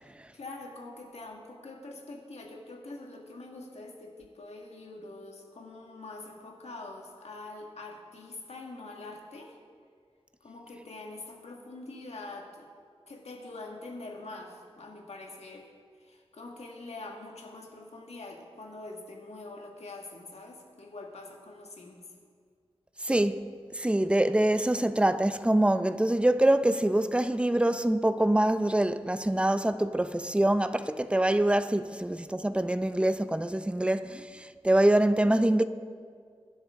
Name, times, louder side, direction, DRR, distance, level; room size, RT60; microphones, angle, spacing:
voice 1, 0.0-9.6 10.4-12.7 13.1-15.7 16.0-22.0 33.8-34.3, left 2 dB, 90° left, 1.8 m, -44 dB
voice 2, 23.0-23.4 23.7-35.6, right 1 dB, 10° right, 0.5 m, -25 dB
22.5 x 11.0 x 3.7 m
wide cardioid pair, 95°, 11 cm